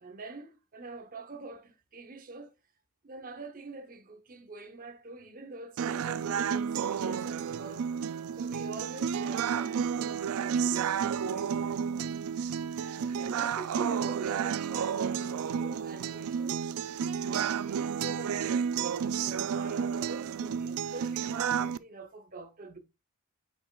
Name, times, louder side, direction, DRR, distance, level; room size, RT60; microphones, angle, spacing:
voice 1, 0.0-2.5 3.0-7.9 8.3-12.1 12.8-16.6 17.2-22.8, right 3 dB, 40° right, 0.8 m, -45 dB
sound 1, 5.8-21.8, right 7 dB, 75° right, 0.3 m, -31 dB
8.4 x 5.3 x 2.3 m
head